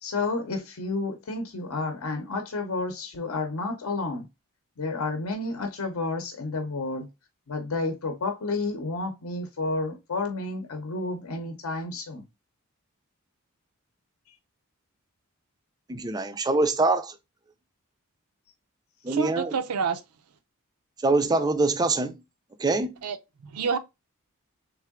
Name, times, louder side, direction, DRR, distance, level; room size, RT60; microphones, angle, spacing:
voice 1, 0.0-4.2 4.8-7.1 7.5-12.2, left 3 dB, 70° left, 0.7 m, -31 dB
voice 2, 15.9-17.1 19.0-19.6 21.0-22.1 22.6-23.0, right 3 dB, 20° right, 0.4 m, -24 dB
voice 3, 19.1-20.0 23.0-23.2 23.4-23.8, right 5 dB, 85° right, 0.6 m, -28 dB
3.6 x 3.4 x 3.5 m
head